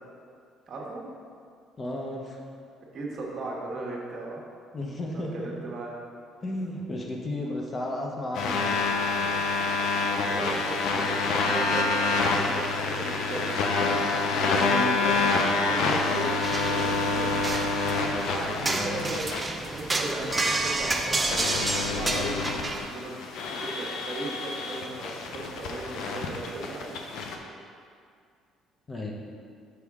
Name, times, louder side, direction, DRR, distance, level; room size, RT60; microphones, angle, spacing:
voice 1, 0.7-1.0 2.9-4.4 5.3-5.9 10.2-17.4 18.3-19.2 19.7-23.1 23.5-26.9, right 2 dB, 45° right, -3 dB, 1.2 m, -37 dB
voice 2, 1.8-2.4 4.7-5.6 6.4-8.7 14.7-15.1 18.7-19.1 28.9-29.1, left 1 dB, 30° left, 0 dB, 0.8 m, -33 dB
sound 1, 8.3-27.4, left 3 dB, 75° left, 0.6 m, -28 dB
sound 2, 16.4-22.8, right 2 dB, 20° right, 0.4 m, -30 dB
6.3 x 4.8 x 3.6 m, 2.2 s
cardioid pair, 110°, 0 cm